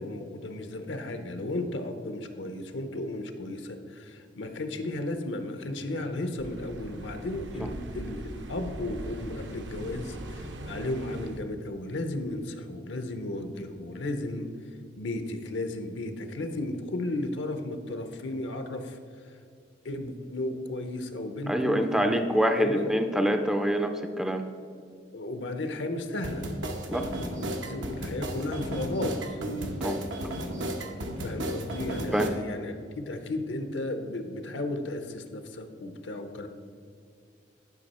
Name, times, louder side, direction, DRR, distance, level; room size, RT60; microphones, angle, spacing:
voice 1, 0.0-14.5 15.0-19.0 19.2-19.3 19.8-22.2 22.6-22.9 25.1-26.4 26.9-29.4 31.2-36.5, left 2 dB, 70° left, 7 dB, 0.7 m, -34 dB
sound 1, 6.4-11.4, right 1 dB, 70° right, 0.8 m, -40 dB
voice 2, 21.5-24.4 26.9-27.1 29.8-30.0 32.1-32.3, equal, 5° right, 6 dB, 0.4 m, -26 dB
sound 2, 26.2-32.3, right 1 dB, 90° right, 1.0 m, -34 dB
11.0 x 5.3 x 4.2 m, 2.3 s
head